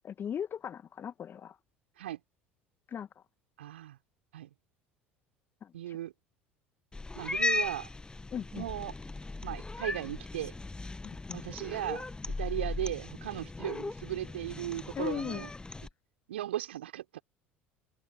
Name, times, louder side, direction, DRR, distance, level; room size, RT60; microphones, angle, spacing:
voice 1, 0.0-1.5 2.9-3.1 5.6-5.7 8.3-8.6 11.0-11.4 14.9-15.4, left 8 dB, 35° left, 1.7 m, -37 dB
voice 2, 3.6-4.0 4.3-4.5 5.7-6.1 7.1-7.9 8.5-8.9 9.4-10.5 11.3-12.0 12.4-15.5 16.3-17.2, right 13 dB, 70° right, 5.4 m, -37 dB
Cat, 6.9-15.9, left 3 dB, 15° left, 1.7 m, -37 dB
open air
figure-of-eight pair, 65°, 6 cm